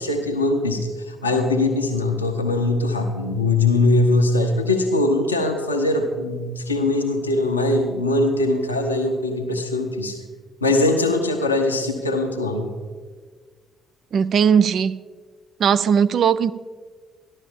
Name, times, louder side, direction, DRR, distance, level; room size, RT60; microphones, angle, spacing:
voice 1, 0.0-10.2 10.6-12.7, left 2 dB, 90° left, 4 dB, 0.8 m, -21 dB
voice 2, 14.1-15.0 15.6-16.5, right 7 dB, 55° right, 15 dB, 0.4 m, -18 dB
13.5 x 11.5 x 3.5 m, 1.5 s
figure-of-eight pair, 45°, 0 cm